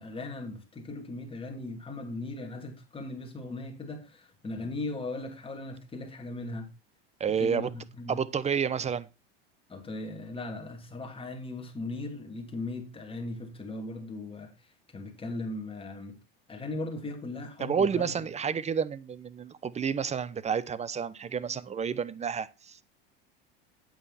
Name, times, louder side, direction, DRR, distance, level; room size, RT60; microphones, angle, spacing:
voice 1, 0.0-6.7 7.4-8.2 9.7-16.2 16.5-18.1 18.5-18.6, left 2 dB, 20° left, 2.9 m, -38 dB
voice 2, 7.2-7.7 8.1-9.1 17.6-22.8, right 7 dB, 25° right, 0.8 m, -30 dB
8.9 x 8.7 x 4.3 m
supercardioid pair, 100°, 29 cm